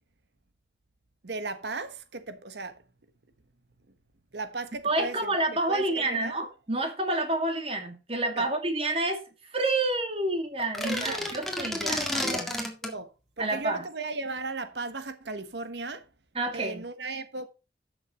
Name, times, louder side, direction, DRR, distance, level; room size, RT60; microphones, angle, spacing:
voice 1, 1.2-2.8 4.3-5.3 5.7-6.3 8.4-8.5 10.8-11.2 12.8-16.0 16.5-17.5, right 3 dB, 80° right, 1.3 m, -36 dB
voice 2, 4.8-9.2 9.5-12.5 13.4-13.8 16.3-16.8, right 2 dB, 35° right, 2.2 m, -29 dB
sound 1, 10.6-13.0, left 1 dB, ahead, 1.9 m, -31 dB
12.0 x 6.8 x 4.3 m
head